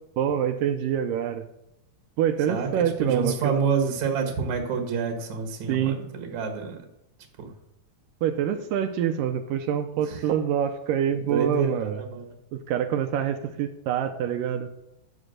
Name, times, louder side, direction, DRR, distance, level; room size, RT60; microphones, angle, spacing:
voice 1, 0.2-1.4 2.2-3.5 5.7-6.0 8.2-12.0 12.5-14.7, right 9 dB, 80° right, 7 dB, 2.0 m, -26 dB
voice 2, 2.5-6.8 7.4-7.5 10.0-10.3 11.1-12.3, right 5 dB, 55° right, 3 dB, 2.4 m, -28 dB
11.0 x 7.2 x 6.5 m, 0.84 s
omnidirectional pair, 4.5 m